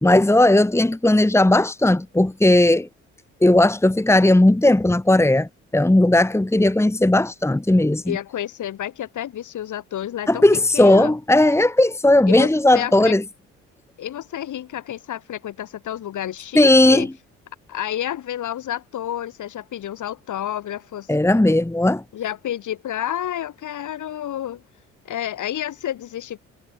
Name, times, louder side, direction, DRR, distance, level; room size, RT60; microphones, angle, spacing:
voice 1, 0.0-2.9 3.4-8.2 10.3-13.2 16.6-17.1 21.1-22.0, left 1 dB, 5° left, 2.0 m, -16 dB
voice 2, 8.0-10.5 10.7-11.2 12.3-13.1 14.0-17.1 17.7-21.2 22.1-24.6 25.0-26.4, left 11 dB, 55° left, 7.9 m, -30 dB
figure-of-eight pair, 50°, 36 cm